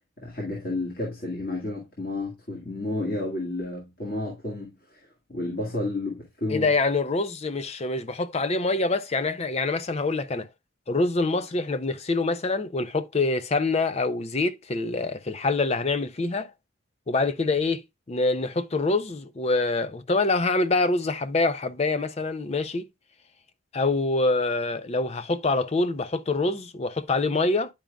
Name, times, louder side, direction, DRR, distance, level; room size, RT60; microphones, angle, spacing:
voice 1, 0.2-5.0 5.3-6.7, left 2 dB, 45° left, 1.9 m, -31 dB
voice 2, 6.5-10.5 10.9-16.5 17.1-17.8 18.1-22.9 23.7-27.7, left 3 dB, 30° left, 0.4 m, -25 dB
10.5 x 5.0 x 2.3 m
head